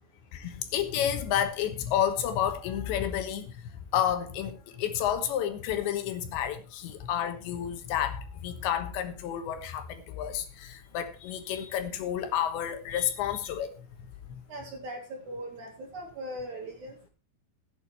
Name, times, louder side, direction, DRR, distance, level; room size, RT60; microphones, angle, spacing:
voice 1, 0.3-13.8 14.3-14.4, left 10 dB, 75° left, 3.3 m, -30 dB
voice 2, 14.5-16.9, right 1 dB, 55° right, 2.5 m, -39 dB
16.5 x 8.8 x 4.4 m
omnidirectional pair, 5.5 m